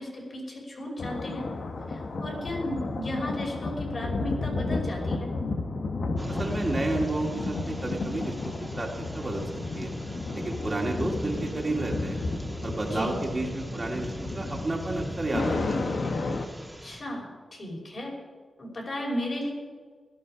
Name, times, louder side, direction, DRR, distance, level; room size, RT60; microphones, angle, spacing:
voice 1, 0.0-1.4 1.9-5.3 12.9-13.3 16.8-18.1 18.6-19.5, left 1 dB, 45° left, -2 dB, 5.3 m, -34 dB
sound 1, 1.0-16.5, left 3 dB, 60° left, 1.3 m, -33 dB
sound 2, 6.2-17.0, right 1 dB, ahead, 2.0 m, -40 dB
voice 2, 6.3-8.3 8.7-9.9 10.3-12.2 12.6-15.9, right 2 dB, 30° right, -1 dB, 2.4 m, -31 dB
sound 3, 7.2-12.9, equal, 20° left, 2.0 m, -44 dB
16.5 x 13.0 x 4.9 m, 1.5 s
wide cardioid pair, 110°, 0 cm